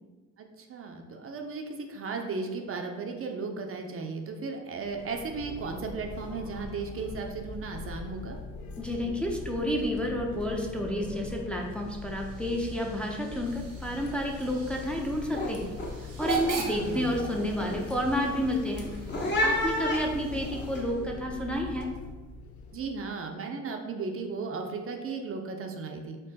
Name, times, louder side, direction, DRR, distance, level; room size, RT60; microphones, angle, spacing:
voice 1, 0.4-8.4 16.6-17.1 22.7-26.2, right 4 dB, 45° right, 3 dB, 0.6 m, -35 dB
sound 1, 4.7-23.0, left 4 dB, 70° left, 0.7 m, -42 dB
voice 2, 8.8-15.7 16.2-18.9 19.4-21.9, equal, 5° left, 0 dB, 0.6 m, -30 dB
Hiss / Train / Alarm, 11.6-21.2, right 5 dB, 90° right, 0.9 m, -42 dB
sound 2, 13.5-13.7 14.0-14.4 14.8-20.8, left 1 dB, 35° left, 1.0 m, -33 dB
4.5 x 2.7 x 4.0 m, 1.3 s
cardioid pair, 90°, 30 cm